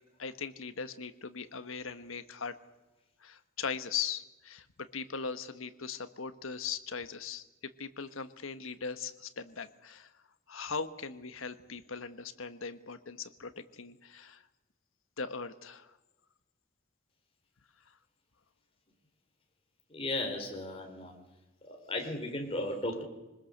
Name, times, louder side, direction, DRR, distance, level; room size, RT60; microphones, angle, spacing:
voice 1, 0.2-2.5 3.2-4.7 4.9-7.4 7.8-10.1 10.5-14.4 15.2-15.9, left 5 dB, 75° left, 11 dB, 1.3 m, -39 dB
voice 2, 19.9-21.1 21.6-23.0, left 1 dB, 30° left, 2 dB, 4.2 m, -35 dB
24.5 x 20.5 x 6.6 m, 1.1 s
head